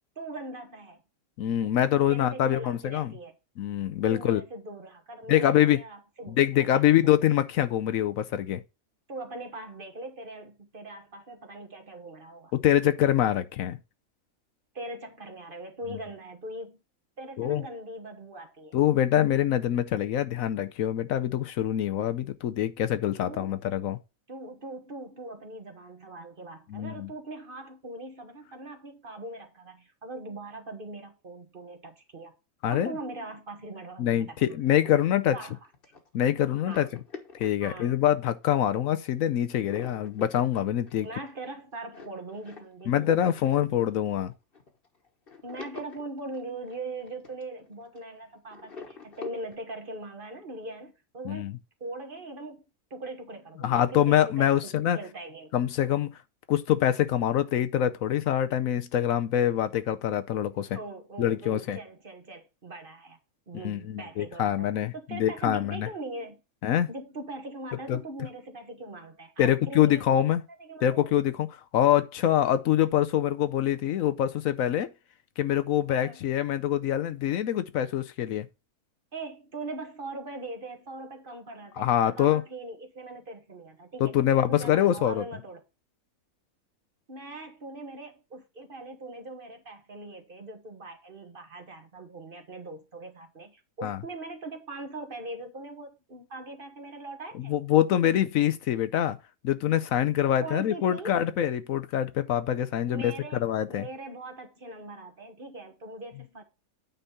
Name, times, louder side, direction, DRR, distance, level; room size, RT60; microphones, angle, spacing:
voice 1, 0.2-1.0 2.1-3.3 4.1-7.1 9.1-12.5 14.7-16.8 17.2-18.8 23.2-23.5 24.3-32.3 32.7-34.6 35.3-35.6 36.6-36.9 37.6-38.0 41.0-43.2 45.4-51.5 51.8-52.6 52.9-55.5 60.7-63.2 63.5-66.4 66.9-70.3 70.6-71.1 75.9-76.2 79.1-84.2 84.5-85.6 87.1-97.6 100.4-101.2 102.9-106.4, right 2 dB, 40° right, 1.4 m, -41 dB
voice 2, 1.4-3.1 3.6-4.4 5.3-5.8 6.3-8.6 12.5-13.8 17.4-17.6 18.7-24.0 26.7-27.1 32.6-32.9 34.0-35.3 36.1-36.9 37.3-41.1 42.9-44.3 51.2-51.5 53.6-55.0 55.5-56.1 56.5-60.8 61.2-61.8 63.6-65.9 66.6-66.9 67.9-68.0 69.4-70.4 70.8-71.5 71.7-74.9 75.4-78.5 81.8-82.4 84.0-85.2 93.8-94.0 97.5-99.2 99.4-103.9, left 11 dB, 75° left, 1.0 m, -25 dB
sound 1, 34.6-38.4 38.9-39.2 39.5-48.2 48.5-49.6, left 4 dB, 40° left, 1.4 m, -46 dB
9.1 x 4.1 x 5.6 m
omnidirectional pair, 1.5 m